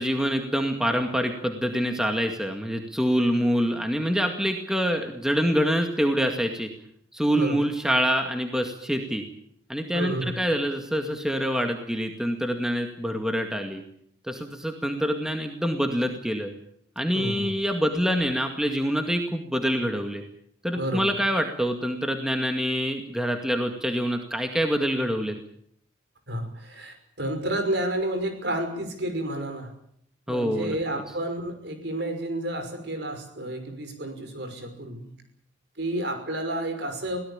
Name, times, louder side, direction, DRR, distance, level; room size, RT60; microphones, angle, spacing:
voice 1, 0.0-6.7 7.1-9.2 9.7-13.8 14.3-16.5 17.0-20.2 20.6-25.4 30.3-31.0, equal, 5° right, 4 dB, 2.0 m, -26 dB
voice 2, 7.3-7.6 9.9-10.4 17.1-17.5 20.7-21.1 26.3-29.7 30.3-35.1 35.8-37.2, right 1 dB, 60° right, 6 dB, 5.9 m, -31 dB
23.5 x 17.5 x 8.9 m, 0.68 s
head